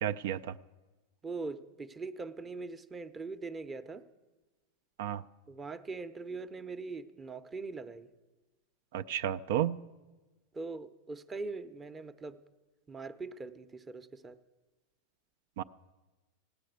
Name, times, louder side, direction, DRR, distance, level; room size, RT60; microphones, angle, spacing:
voice 1, 0.0-0.6 5.0-5.2 8.9-9.8 15.6-15.7, right 10 dB, 70° right, 11 dB, 0.4 m, -32 dB
voice 2, 1.2-4.0 5.5-8.1 10.5-12.4 12.9-14.4, right 3 dB, 15° right, 10 dB, 0.7 m, -41 dB
16.0 x 9.5 x 8.0 m, 1.2 s
supercardioid pair, 140°, 0 cm